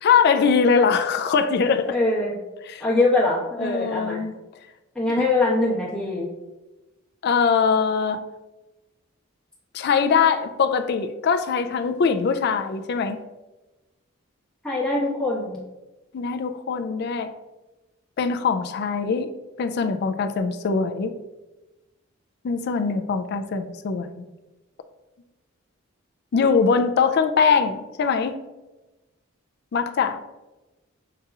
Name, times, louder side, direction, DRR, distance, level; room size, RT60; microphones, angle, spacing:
voice 1, 0.0-1.9 2.7-2.8 3.6-4.3 5.2-5.3 7.2-8.2 9.7-13.2 16.1-17.3 18.2-19.3 19.6-21.1 22.4-24.2 26.3-28.4 29.7-30.2, left 5 dB, 50° left, 8 dB, 0.3 m, -22 dB
voice 2, 1.9-2.4 2.8-4.2 4.9-6.3 14.6-15.6, left 2 dB, 5° left, -7 dB, 1.1 m, -23 dB
6.6 x 2.9 x 2.3 m, 1.1 s
head